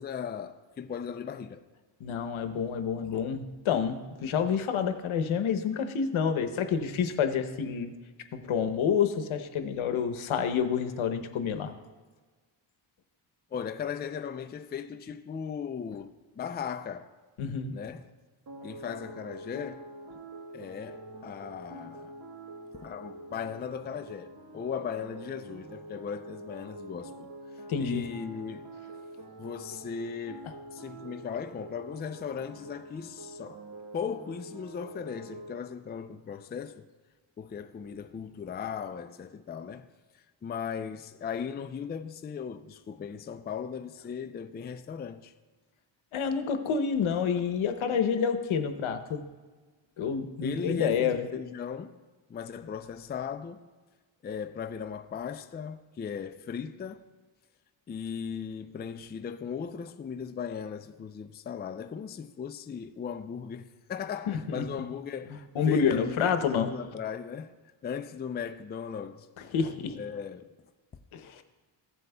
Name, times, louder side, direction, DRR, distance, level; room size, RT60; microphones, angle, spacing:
voice 1, 0.0-1.6 3.1-3.3 13.5-17.1 17.7-18.1 18.6-19.9 20.5-22.1 22.7-27.3 27.8-28.7 29.4-33.6 33.9-36.9 37.4-39.9 40.4-45.3 50.4-52.0 52.3-53.7 54.2-57.0 57.9-67.5 67.8-69.3 70.0-70.5, left 7 dB, 25° left, 0.3 m, -37 dB
voice 2, 2.0-7.9 8.3-11.7 17.4-17.7 27.7-28.0 46.1-49.2 50.0-51.3 64.3-64.9 65.3-66.7 69.5-70.0 71.1-71.4, left 7 dB, 85° left, 0.8 m, -28 dB
sound 1, 18.5-35.6, right 1 dB, 45° right, 1.2 m, -46 dB
15.0 x 7.8 x 2.2 m
cardioid pair, 95°, 47 cm